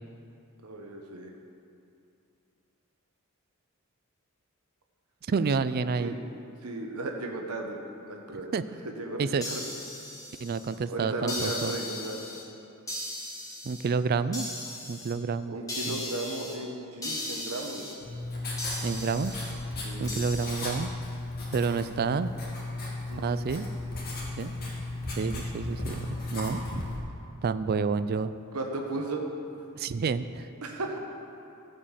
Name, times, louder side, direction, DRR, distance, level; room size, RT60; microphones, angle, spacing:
voice 1, 0.6-1.3 6.0-6.2 6.6-7.8 8.1-8.5 8.8-9.6 10.9-12.4 15.5-18.0 19.8-20.2 21.7-22.0 23.1-23.3 28.5-29.2 30.6-31.0, right 2 dB, 85° right, 1 dB, 1.1 m, -35 dB
voice 2, 5.3-6.2 8.5-8.6 9.2-9.5 10.4-11.7 13.6-14.5 14.9-15.6 15.9-16.0 18.8-19.4 20.0-20.9 21.5-22.3 23.2-23.7 24.4-24.5 25.1-26.6 27.4-28.3 29.7-30.5, right 5 dB, 45° right, 13 dB, 0.4 m, -29 dB
sound 1, 9.4-10.8 11.3-12.4 12.9-13.9 14.3-15.1 15.7-16.6 17.0-17.9 18.6-19.5 20.1-20.8, left 2 dB, 15° left, 1.7 m, -37 dB
Writing, 18.0-27.0, left 2 dB, 45° left, 2.2 m, -35 dB
15.0 x 5.3 x 7.2 m, 2.6 s
head